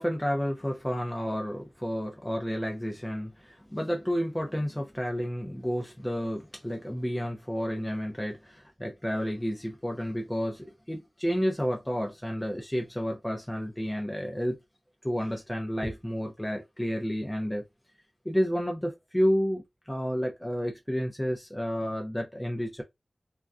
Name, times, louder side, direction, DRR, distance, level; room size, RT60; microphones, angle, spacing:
voice 1, 0.0-14.6 15.0-17.6 18.2-22.8, equal, 10° left, 0.6 m, -31 dB
2.3 x 2.2 x 2.5 m
cardioid pair, 45°, 0 cm